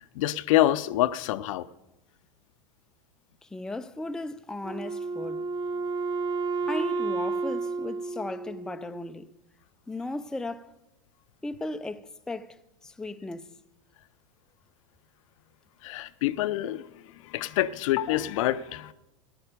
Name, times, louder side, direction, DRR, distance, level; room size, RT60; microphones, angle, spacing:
voice 1, 0.0-1.7 15.8-18.9, left 14 dB, 65° left, 0.6 m, -27 dB
voice 2, 3.4-5.5 6.7-9.3 9.9-10.7 11.4-13.5, left 2 dB, 5° left, 0.4 m, -36 dB
Wind instrument woodwind instrument, 4.6-9.1, right 4 dB, 25° right, 0.9 m, -31 dB
15.0 x 11.5 x 5.1 m
hypercardioid pair, 110°, 18 cm